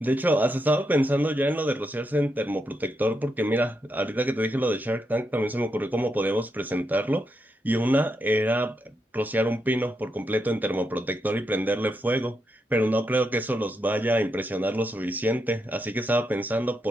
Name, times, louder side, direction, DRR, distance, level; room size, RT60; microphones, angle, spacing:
voice 1, 0.0-7.4 7.6-12.4 12.7-16.9, right 1 dB, 10° right, 0.5 m, -26 dB
4.8 x 4.5 x 5.4 m
head